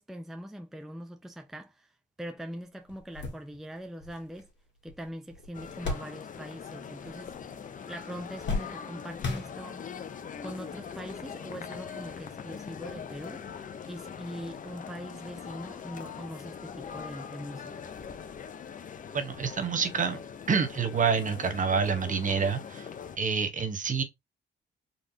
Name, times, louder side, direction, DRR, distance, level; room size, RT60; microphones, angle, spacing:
voice 1, 0.0-1.9 2.2-4.5 4.8-7.3 7.9-9.8 10.4-13.4 13.9-17.9, equal, ahead, 0.5 m, -42 dB
sound 1, 2.4-2.5 2.9-6.7 6.9-7.7 8.0-10.0 10.8-10.9 12.2-12.3, left 3 dB, 65° left, 1.7 m, -37 dB
sound 2, 5.5-23.2, left 7 dB, 40° left, 0.7 m, -42 dB
voice 2, 19.1-20.2 20.5-22.9 23.2-24.0, right 6 dB, 40° right, 1.0 m, -27 dB
4.0 x 3.3 x 2.7 m
cardioid pair, 90°, 20 cm